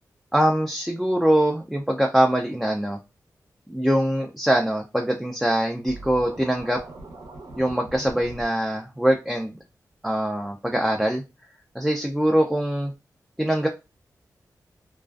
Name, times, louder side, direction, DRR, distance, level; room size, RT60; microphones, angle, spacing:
voice 1, 0.3-3.0 3.7-6.8 7.6-9.6 10.0-11.2 11.7-12.9 13.4-13.7, right 1 dB, 5° right, 1 dB, 0.3 m, -23 dB
Scratching (performance technique), 5.9-8.4, right 2 dB, 80° right, 0.6 m, -41 dB
2.4 x 2.3 x 2.2 m, 0.26 s
wide cardioid pair, 110°, 7 cm